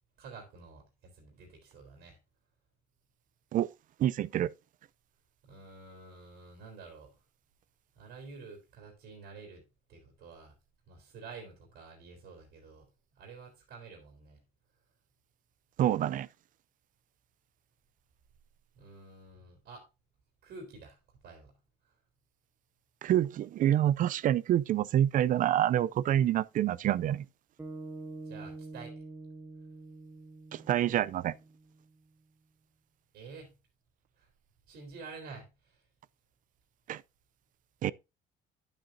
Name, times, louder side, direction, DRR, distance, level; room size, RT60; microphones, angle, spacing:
voice 1, 0.2-2.2 5.4-7.2 7.9-9.6 9.9-10.5 10.9-12.9 13.1-14.4 18.7-19.9 20.4-21.0 21.2-21.5 28.2-29.0 33.1-33.5 34.2-34.3 34.7-35.8, right 4 dB, 80° right, 3.4 m, -49 dB
voice 2, 4.0-4.5 15.8-16.3 23.0-27.3 30.5-31.3 36.9-37.0 37.8-37.9, right 11 dB, 50° right, 0.4 m, -27 dB
sound 1, 27.6-32.0, right 3 dB, 15° right, 0.8 m, -46 dB
10.0 x 8.9 x 2.7 m
cardioid pair, 110°, 17 cm